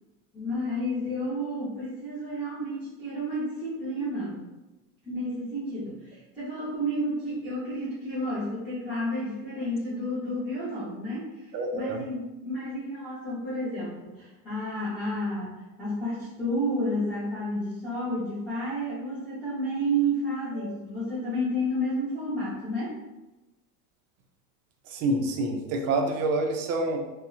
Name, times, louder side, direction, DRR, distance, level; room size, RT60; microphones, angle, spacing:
voice 1, 0.3-4.5 5.0-23.0, equal, ahead, -12 dB, 0.7 m, -31 dB
voice 2, 11.5-12.0 20.5-20.8 24.8-27.0, right 2 dB, 40° right, 2 dB, 0.4 m, -27 dB
2.7 x 2.1 x 2.4 m, 1.1 s
supercardioid pair, 115°, 39 cm